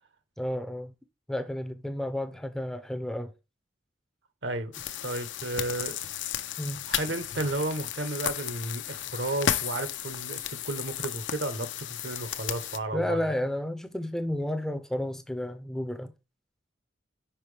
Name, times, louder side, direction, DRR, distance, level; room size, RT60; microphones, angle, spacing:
voice 1, 0.4-0.9 1.3-3.3 6.6-6.8 12.9-16.1, left 1 dB, 5° left, 0.4 m, -31 dB
voice 2, 4.4-4.7 5.0-6.0 6.8-13.3, right 2 dB, 70° right, 1.0 m, -33 dB
sound 1, 4.7-12.8, left 10 dB, 85° left, 0.5 m, -34 dB
5.8 x 5.3 x 3.3 m
head